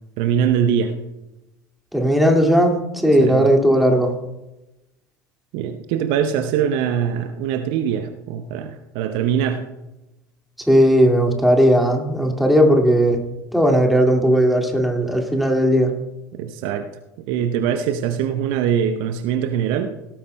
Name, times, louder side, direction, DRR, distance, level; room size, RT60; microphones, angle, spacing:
voice 1, 0.2-0.9 3.2-3.6 5.5-9.6 16.4-16.9 17.2-19.9, right 8 dB, 55° right, 8 dB, 0.8 m, -22 dB
voice 2, 1.9-4.1 10.7-13.2 13.5-15.9, equal, ahead, 2 dB, 2.2 m, -16 dB
17.5 x 13.5 x 2.2 m, 0.99 s
figure-of-eight pair, 70°, 10 cm